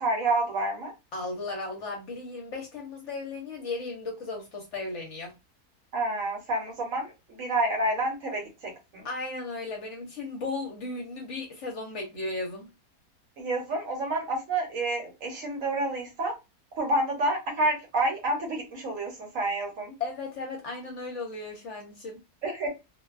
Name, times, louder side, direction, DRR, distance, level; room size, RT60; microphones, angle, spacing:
voice 1, 0.0-0.9 5.9-9.1 13.4-16.3 16.8-19.9 22.4-22.7, right 2 dB, 60° right, 1.0 m, -29 dB
voice 2, 1.1-5.3 9.0-12.7 20.0-22.2, left 3 dB, 60° left, 0.9 m, -35 dB
2.5 x 2.2 x 2.3 m
omnidirectional pair, 1.7 m